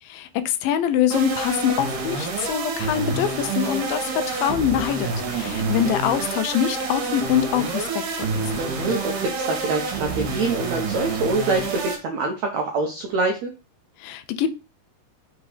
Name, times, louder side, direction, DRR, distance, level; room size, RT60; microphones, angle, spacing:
voice 1, 0.1-8.3 14.0-14.5, left 10 dB, 75° left, 2.3 m, -24 dB
sound 1, 1.1-12.0, right 3 dB, 60° right, 2.6 m, -28 dB
voice 2, 8.6-13.5, right 3 dB, 85° right, 1.5 m, -25 dB
6.4 x 3.7 x 4.9 m
omnidirectional pair, 4.6 m